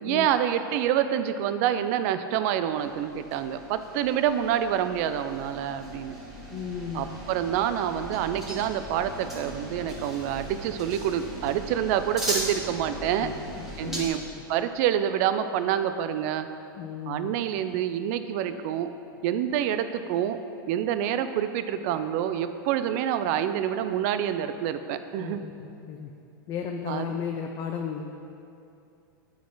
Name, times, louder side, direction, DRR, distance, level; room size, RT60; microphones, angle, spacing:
voice 1, 0.0-6.1 6.9-13.3 13.8-14.2 14.5-16.5 17.1-18.9 19.2-20.4 20.7-25.4 26.9-27.1, right 10 dB, 45° right, 10 dB, 0.4 m, -27 dB
sound 1, 2.8-14.1, right 1 dB, 5° right, 1.5 m, -38 dB
voice 2, 6.5-7.2 13.2-13.3 13.6-14.4 16.8-17.3 25.2-25.5 25.9-26.1 26.5-28.0, left 7 dB, 30° left, 2 dB, 0.4 m, -34 dB
8.2 x 4.1 x 4.7 m, 2.7 s
supercardioid pair, 140°, 12 cm